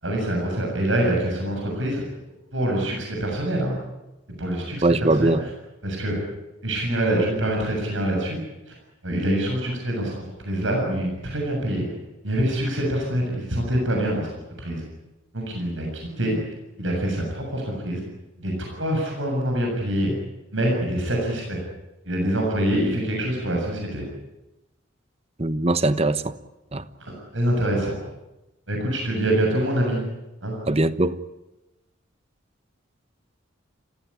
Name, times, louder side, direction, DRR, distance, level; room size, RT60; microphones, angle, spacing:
voice 1, 0.0-2.0 2.5-3.7 4.3-5.3 5.8-6.2 6.6-8.4 8.7-8.8 9.0-10.2 10.4-11.9 12.2-14.3 14.6-14.8 15.3-16.4 16.8-18.0 18.4-20.1 20.5-21.6 22.1-24.0 27.0-28.0 28.7-30.0 30.4-30.6, right 1 dB, 75° right, 0 dB, 7.3 m, -25 dB
voice 2, 4.8-5.4 25.4-26.4 26.7-26.8 30.7-31.2, right 2 dB, 30° right, 13 dB, 1.1 m, -21 dB
29.5 x 16.0 x 9.9 m, 0.99 s
head